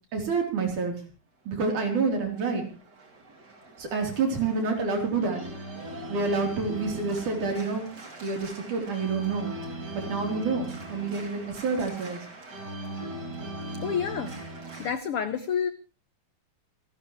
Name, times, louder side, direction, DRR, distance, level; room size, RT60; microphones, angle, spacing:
voice 1, 0.1-0.9 1.5-2.6 3.8-5.4 6.1-7.9 8.2-9.5 9.9-12.2, right 4 dB, 65° right, 3 dB, 5.1 m, -28 dB
Organ, 1.9-14.9, right 1 dB, 30° right, 3.3 m, -40 dB
voice 2, 13.8-14.3 14.8-15.7, left 7 dB, 80° left, 11 dB, 1.3 m, -28 dB
27.5 x 12.5 x 3.1 m, 0.32 s
omnidirectional pair, 3.8 m